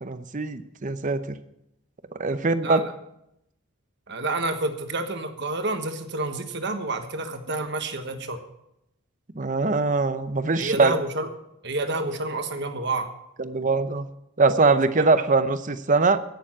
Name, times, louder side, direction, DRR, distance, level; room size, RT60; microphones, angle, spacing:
voice 1, 0.0-1.4 2.1-2.8 9.3-10.9 13.4-14.1 14.4-16.2, right 3 dB, 35° right, 11 dB, 0.7 m, -22 dB
voice 2, 4.1-8.4 10.6-11.3 11.6-13.1 15.0-15.1, right 2 dB, 55° right, 7 dB, 1.4 m, -29 dB
16.5 x 7.1 x 6.1 m, 0.82 s
head